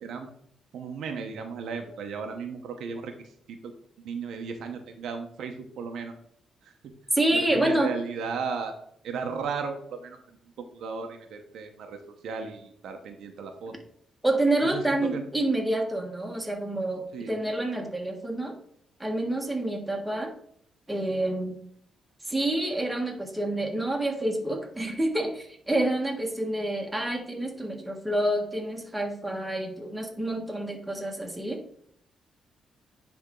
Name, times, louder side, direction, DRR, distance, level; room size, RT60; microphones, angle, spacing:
voice 1, 0.7-3.1 3.5-3.7 4.0-6.1 6.6-6.8 7.3-8.7 9.0-10.2 10.6-13.7 14.6-15.3 17.1-17.3, right 5 dB, 80° right, 4 dB, 1.0 m, -35 dB
voice 2, 7.1-7.9 14.2-18.5 19.0-20.3 20.9-21.6 22.3-31.6, right 1 dB, 10° right, 1 dB, 1.6 m, -28 dB
9.8 x 3.5 x 3.8 m, 0.67 s
cardioid pair, 95°, 0 cm